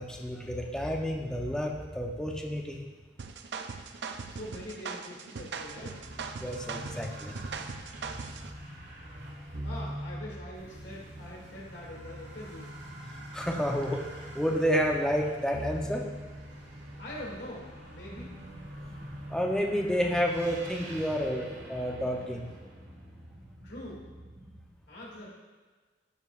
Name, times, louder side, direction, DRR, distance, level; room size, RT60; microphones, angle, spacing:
voice 1, 0.0-2.9 6.4-7.4 13.3-14.0 14.3-16.1 19.3-22.5, equal, 5° left, 0 dB, 0.7 m, -30 dB
sound 1, 3.2-8.5, right 5 dB, 65° right, 0.4 m, -40 dB
voice 2, 4.3-6.0 9.6-12.8 17.0-18.3 23.6-24.1 24.9-25.3, left 1 dB, 70° left, -4 dB, 2.3 m, -43 dB
sound 2, 5.6-23.5, equal, 85° right, 1.4 m, -43 dB
sound 3, 18.0-24.7, equal, 30° right, 1.1 m, -51 dB
13.0 x 4.7 x 2.4 m, 1.4 s
head